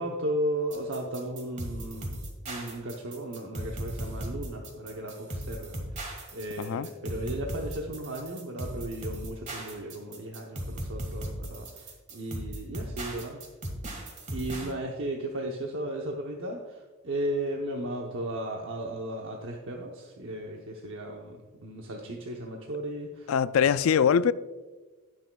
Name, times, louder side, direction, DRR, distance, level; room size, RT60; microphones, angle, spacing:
voice 1, 0.0-6.0 6.3-13.4 14.3-23.7, right 1 dB, 65° right, 0.9 m, -35 dB
sound 1, 0.7-14.7, right 1 dB, 35° right, 1.7 m, -37 dB
voice 2, 6.6-6.9 23.3-24.3, left 7 dB, 70° left, 0.3 m, -23 dB
17.5 x 6.2 x 2.3 m
head